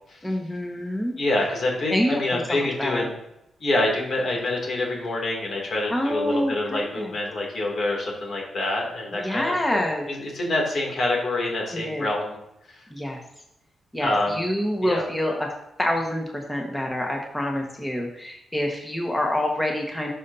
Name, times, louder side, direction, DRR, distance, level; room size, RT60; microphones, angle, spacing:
voice 1, 0.2-1.1 1.9-3.0 5.9-7.1 9.1-10.1 11.7-12.1 12.9-13.2 13.9-15.5 15.8-20.1, left 1 dB, 10° left, 0 dB, 1.4 m, -27 dB
voice 2, 1.2-3.1 3.6-9.8 10.1-12.4 14.0-14.5 14.8-15.0, left 2 dB, 60° left, -1 dB, 2.6 m, -26 dB
11.5 x 5.7 x 2.7 m, 0.85 s
cardioid pair, 65°, 0 cm